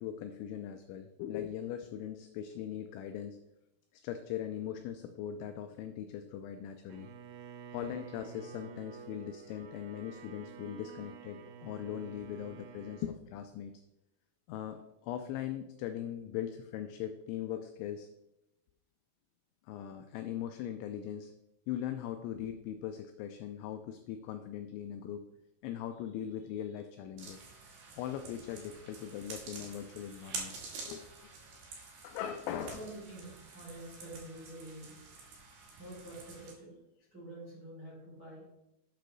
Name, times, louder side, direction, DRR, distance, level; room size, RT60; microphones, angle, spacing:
voice 1, 0.0-3.4 4.0-7.1 7.7-13.7 14.5-18.1 19.7-21.3 21.7-25.3 25.6-27.5 28.0-30.6 30.8-31.4 32.0-32.8, left 10 dB, 85° left, 7 dB, 2.6 m, -40 dB
Bowed string instrument, 6.9-13.2, right 7 dB, 90° right, 3.6 m, -50 dB
sound 1, 27.2-36.5, right 4 dB, 60° right, 3.0 m, -48 dB
voice 2, 32.7-35.3 35.8-36.7 37.1-38.4, right 1 dB, 20° right, -7 dB, 3.4 m, -48 dB
9.0 x 6.6 x 3.9 m, 0.89 s
omnidirectional pair, 5.8 m